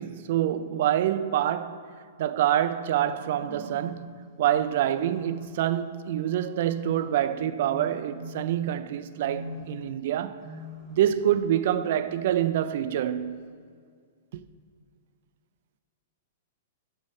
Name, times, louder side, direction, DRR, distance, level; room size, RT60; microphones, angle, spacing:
voice 1, 0.0-1.9 2.2-4.1 4.4-10.4 10.9-13.4, right 11 dB, 60° right, 0.4 m, -26 dB
sound 1, 3.0-4.0 4.6-5.6 6.1-7.2 7.7-8.7 9.1-9.8 10.4-11.1, equal, ahead, 1.6 m, -42 dB
8.0 x 5.4 x 6.2 m
hypercardioid pair, 145°, 0 cm